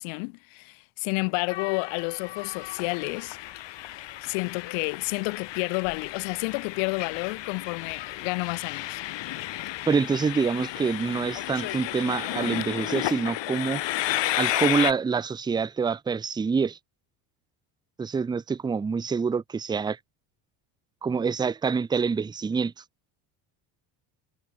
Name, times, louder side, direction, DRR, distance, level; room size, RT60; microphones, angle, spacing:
voice 1, 0.0-3.4 4.2-9.0, left 35 dB, 85° left, 3.2 m, -30 dB
Train, 1.5-14.9, left 15 dB, 60° left, 3.5 m, -33 dB
voice 2, 9.9-13.8 14.4-16.8 18.0-20.0 21.0-22.7, right 5 dB, 10° right, 0.4 m, -26 dB
supercardioid pair, 100°, 48 cm